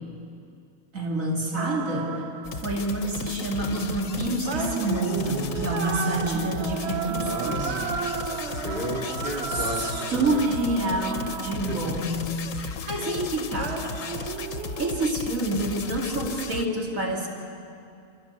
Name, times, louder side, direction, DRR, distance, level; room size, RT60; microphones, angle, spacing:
voice 1, 0.9-2.2 2.6-7.7 9.5-13.8 14.8-17.3, right 2 dB, 85° right, -1 dB, 2.9 m, -28 dB
sound 1, 1.6-3.2 4.4-12.3 13.6-15.1, right 7 dB, 60° right, 1.0 m, -34 dB
sound 2, 2.4-16.7, left 6 dB, 85° left, 1.4 m, -35 dB
voice 2, 7.2-8.0 8.4-10.4 11.7-12.1 12.7-12.9 14.2-14.4, right 1 dB, 40° right, -2 dB, 3.4 m, -34 dB
29.5 x 15.0 x 8.3 m, 2.5 s
omnidirectional pair, 1.4 m